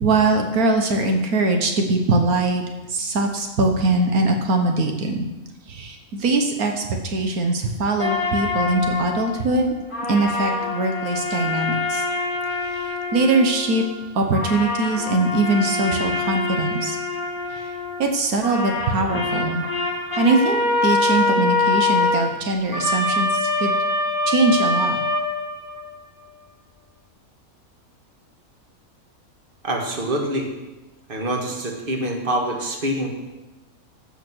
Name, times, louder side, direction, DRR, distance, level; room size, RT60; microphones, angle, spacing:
voice 1, 0.0-2.6 2.9-5.3 5.7-9.7 10.1-12.0 12.6-13.8 14.1-17.0 17.5-17.7 18.0-19.6 20.2-23.8 24.2-25.0, right 2 dB, 80° right, 4 dB, 1.6 m, -22 dB
sound 1, 8.0-9.7 9.9-14.1 14.3-18.2 18.4-26.0, left 3 dB, 35° left, 1.8 m, -25 dB
voice 2, 29.6-30.5 31.1-33.1, right 1 dB, 35° right, 1 dB, 1.8 m, -25 dB
15.0 x 5.8 x 6.2 m, 1.1 s
omnidirectional pair, 1.5 m